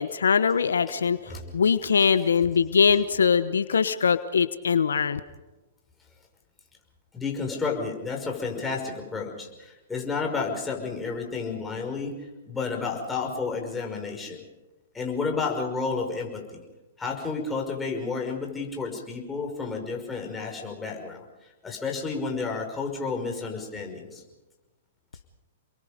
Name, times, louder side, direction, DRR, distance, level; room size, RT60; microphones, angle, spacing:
voice 1, 0.0-1.2 1.5-5.2, left 6 dB, 85° left, 12 dB, 1.1 m, -22 dB
voice 2, 0.9-1.5 7.1-12.2 12.5-14.4 14.9-16.6 17.0-21.3 21.6-24.2, left 4 dB, 10° left, 1 dB, 5.5 m, -31 dB
29.5 x 22.5 x 5.2 m, 1.1 s
hypercardioid pair, 125°, 0 cm